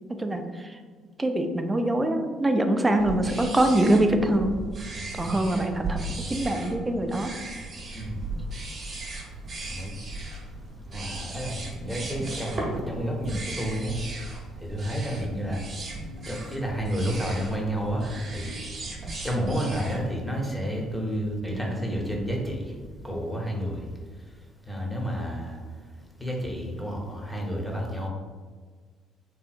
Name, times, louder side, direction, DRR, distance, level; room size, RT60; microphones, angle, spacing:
voice 1, 0.1-0.8 1.2-4.5 5.2-7.3, right 1 dB, 20° right, 5 dB, 0.3 m, -24 dB
sound 1, 3.0-20.0, right 2 dB, 45° right, 0.8 m, -36 dB
voice 2, 7.9-8.3 9.7-9.9 10.9-12.6 12.9-14.0 14.6-15.6 16.3-18.6 19.2-22.7 23.0-23.8 24.7-25.6 26.2-28.1, equal, 5° left, -1 dB, 0.7 m, -30 dB
2.7 x 2.5 x 2.4 m, 1.5 s
supercardioid pair, 65°, 0 cm